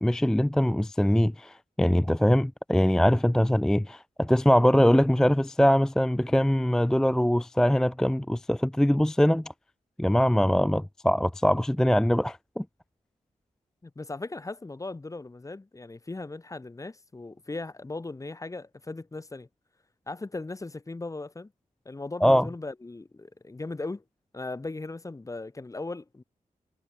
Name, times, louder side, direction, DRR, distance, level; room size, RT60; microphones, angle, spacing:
voice 1, 0.0-9.5 10.0-12.6 22.2-22.5, equal, 5° left, 0.3 m, -22 dB
voice 2, 13.8-19.5 20.1-21.5 21.8-24.0 24.3-26.2, left 3 dB, 25° left, 1.3 m, -38 dB
wide cardioid pair, 125°, 14 cm